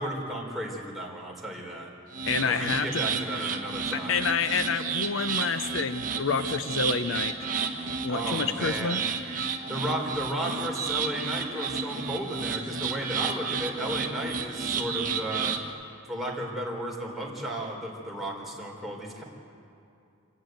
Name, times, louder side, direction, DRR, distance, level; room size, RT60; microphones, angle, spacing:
voice 1, 0.0-1.9 2.4-4.2 8.1-9.1 9.7-15.6 16.1-19.2, right 1 dB, ahead, -3 dB, 3.9 m, -34 dB
sound 1, 2.1-15.7, right 5 dB, 45° right, 1.5 m, -32 dB
voice 2, 2.2-3.0 3.9-7.5 8.0-9.0, left 5 dB, 70° left, 11 dB, 0.6 m, -28 dB
27.5 x 10.5 x 9.3 m, 2.5 s
head